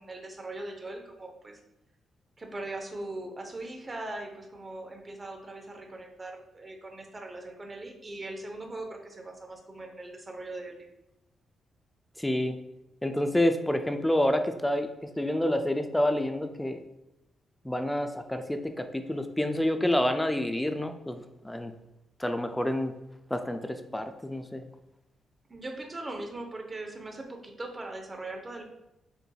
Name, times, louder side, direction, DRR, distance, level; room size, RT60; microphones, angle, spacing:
voice 1, 0.0-1.6 2.4-10.9 25.5-28.6, right 2 dB, 30° right, 3 dB, 0.8 m, -40 dB
voice 2, 12.2-12.6 13.0-16.8 17.6-21.7 22.2-22.9 23.3-24.6, left 1 dB, 10° left, 7 dB, 0.3 m, -28 dB
6.7 x 2.6 x 2.3 m, 0.89 s
cardioid pair, 80°, 0 cm